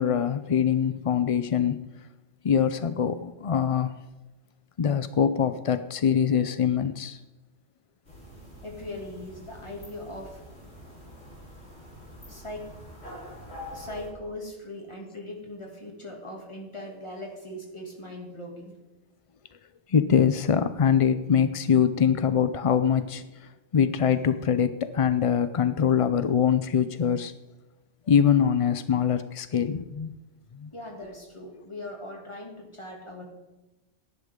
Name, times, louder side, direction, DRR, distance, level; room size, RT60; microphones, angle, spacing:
voice 1, 0.0-1.8 2.4-3.9 4.8-7.2 19.9-23.2 23.7-27.3 28.1-30.1 30.5-30.7, left 8 dB, 50° left, 11 dB, 0.4 m, -23 dB
sound 1, 8.0-14.1, left 1 dB, 80° left, 5.7 m, -45 dB
voice 2, 8.6-10.4 12.3-12.7 13.0-13.1 13.7-18.8 30.7-33.3, left 1 dB, 25° left, 0 dB, 2.6 m, -40 dB
18.5 x 11.0 x 3.7 m, 1.1 s
omnidirectional pair, 1.2 m